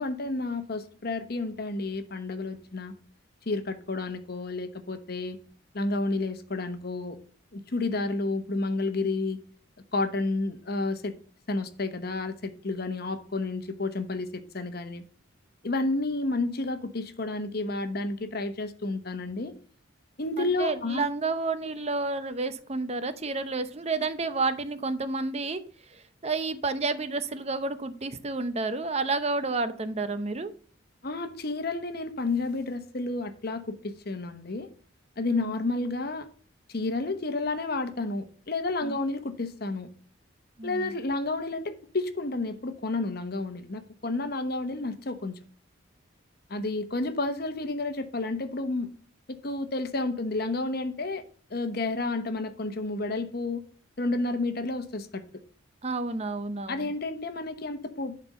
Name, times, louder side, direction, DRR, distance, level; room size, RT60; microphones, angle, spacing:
voice 1, 0.0-2.9 3.5-5.4 5.7-7.2 7.5-9.4 9.9-11.1 11.5-15.0 15.6-19.5 20.2-21.1 31.0-34.7 35.2-36.3 36.7-39.9 40.6-45.4 46.5-48.9 49.3-51.2 51.5-53.6 54.0-55.2 56.7-58.3, left 2 dB, 50° left, 1.0 m, -31 dB
voice 2, 20.4-25.6 26.2-30.5 35.3-35.5 38.8-38.9 40.6-40.9 55.8-56.9, right 3 dB, 30° right, 0.7 m, -30 dB
11.0 x 4.4 x 5.3 m
head